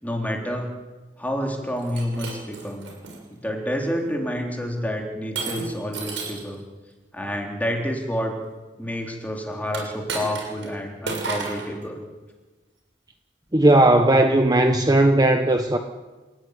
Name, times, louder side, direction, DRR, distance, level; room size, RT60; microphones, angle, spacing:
voice 1, 0.0-0.7 1.2-2.9 3.3-6.6 7.1-8.4 8.8-12.0, equal, 10° left, 1 dB, 3.8 m, -29 dB
Shatter, 1.8-3.2 3.8-4.2 5.4-6.5 9.7-10.7 11.1-11.7, right 4 dB, 80° right, 6.9 m, -32 dB
voice 2, 13.5-15.8, right 1 dB, 20° right, 5 dB, 1.1 m, -17 dB
29.5 x 16.5 x 9.6 m, 1.3 s
head